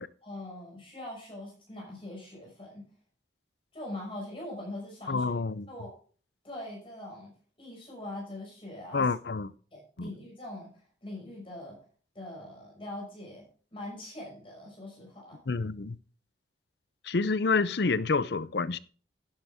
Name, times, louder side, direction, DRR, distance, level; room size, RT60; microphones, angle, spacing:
voice 1, 0.2-2.9 3.7-5.3 5.7-5.9 6.4-9.1 9.7-10.7 11.0-11.8 12.1-13.5 13.7-15.4, left 1 dB, 30° left, 5.7 m, -42 dB
voice 2, 5.1-5.7 8.9-9.5 10.0-10.1 15.5-16.0 17.1-18.8, left 4 dB, 60° left, 0.6 m, -28 dB
12.0 x 10.5 x 3.6 m
head